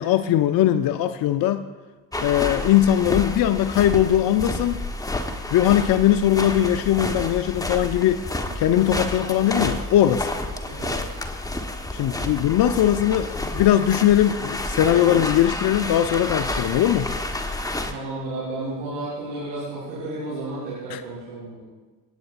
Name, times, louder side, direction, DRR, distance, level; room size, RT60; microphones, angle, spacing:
voice 1, 0.0-1.7 2.2-4.8 5.5-8.3 8.6-10.3 11.9-17.1 20.9-21.0, left 11 dB, 45° left, 10 dB, 0.6 m, -20 dB
sound 1, 2.1-17.9, left 1 dB, 5° left, 1.2 m, -30 dB
voice 2, 10.6-11.0 11.9-12.4 16.4-16.7 17.8-21.6, right 2 dB, 75° right, -9 dB, 3.6 m, -33 dB
26.5 x 9.0 x 2.5 m, 1.3 s
figure-of-eight pair, 45°, 49 cm